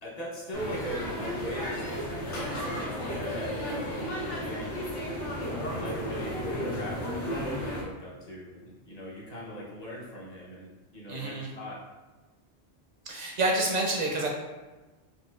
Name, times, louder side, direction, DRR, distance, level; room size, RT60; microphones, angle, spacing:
voice 1, 0.0-4.7 5.4-11.7, equal, 40° left, -6 dB, 0.8 m, -41 dB
sound 1, 0.5-7.8, equal, 90° left, 1.0 m, -33 dB
voice 2, 11.1-11.5 13.1-14.3, right 2 dB, 50° right, -1 dB, 0.5 m, -28 dB
4.3 x 2.4 x 2.3 m, 1.2 s
omnidirectional pair, 1.1 m